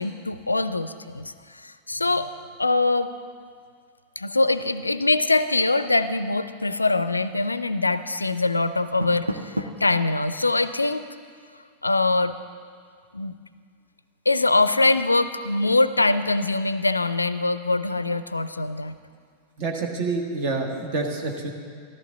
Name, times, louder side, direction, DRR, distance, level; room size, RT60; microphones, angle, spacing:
voice 1, 0.0-2.3 2.6-3.1 4.2-11.0 11.8-12.3 13.1-13.3 14.3-19.0, left 2 dB, 80° left, 13 dB, 0.4 m, -23 dB
Door, 8.7-10.0, equal, 90° right, 0.7 m, -32 dB
voice 2, 19.6-21.5, right 3 dB, 45° right, 2 dB, 1.6 m, -27 dB
14.0 x 13.0 x 3.8 m, 2.1 s
figure-of-eight pair, 90°, 0 cm